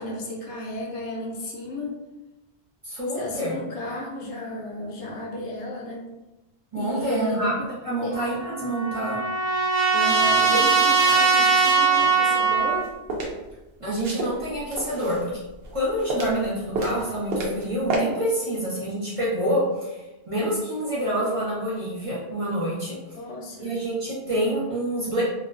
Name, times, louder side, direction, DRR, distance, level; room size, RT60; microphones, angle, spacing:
voice 1, 0.0-1.9 3.1-6.0 6.8-7.5 8.0-8.2 9.9-12.9 23.1-23.7, left 2 dB, 80° left, -1 dB, 0.9 m, -33 dB
voice 2, 2.8-3.6 6.7-7.5 7.8-9.2 13.8-15.3 15.7-23.0 23.6-25.2, right 1 dB, 30° right, -9 dB, 0.8 m, -27 dB
Trumpet, 8.1-12.9, right 5 dB, 90° right, 0.9 m, -21 dB
sound 1, 12.6-13.3 14.0-15.3 15.6-16.5 16.7-17.6 17.9-18.0, right 2 dB, 65° right, 0.7 m, -29 dB
2.4 x 2.2 x 2.4 m, 1.0 s
omnidirectional pair, 1.2 m